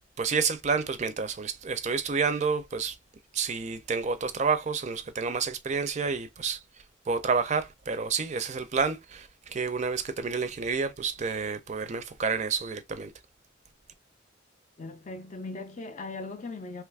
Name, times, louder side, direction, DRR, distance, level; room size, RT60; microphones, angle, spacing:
voice 1, 0.2-2.9 3.3-6.6 7.1-13.1, right 5 dB, 35° right, 0.4 m, -29 dB
voice 2, 14.8-16.8, left 3 dB, 40° left, 0.4 m, -39 dB
3.0 x 2.4 x 3.3 m
head